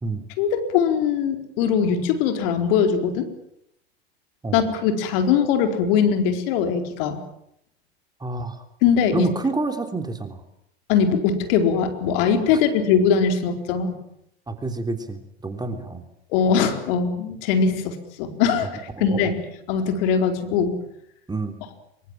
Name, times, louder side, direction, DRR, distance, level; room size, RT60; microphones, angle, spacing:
voice 1, 0.4-3.3 4.5-7.2 8.8-9.3 10.9-13.9 16.3-19.3 19.7-20.8, left 7 dB, 60° left, 6 dB, 4.5 m, -21 dB
voice 2, 8.2-8.6 9.1-10.4 12.5-12.6 14.5-16.0 18.9-19.3 21.3-21.6, right 3 dB, 15° right, 7 dB, 3.2 m, -28 dB
25.0 x 24.0 x 7.6 m, 0.77 s
hypercardioid pair, 85°, 32 cm